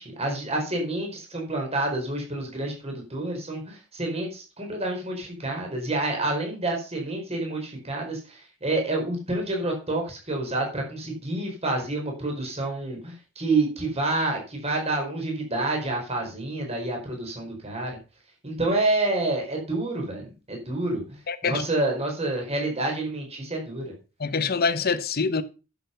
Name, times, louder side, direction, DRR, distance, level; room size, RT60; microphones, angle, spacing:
voice 1, 0.0-17.9 18.4-21.0 21.4-23.9, right 2 dB, 30° right, 4.6 m, -28 dB
voice 2, 21.3-21.6 24.2-25.4, left 5 dB, 50° left, 0.9 m, -25 dB
10.5 x 8.1 x 5.7 m
head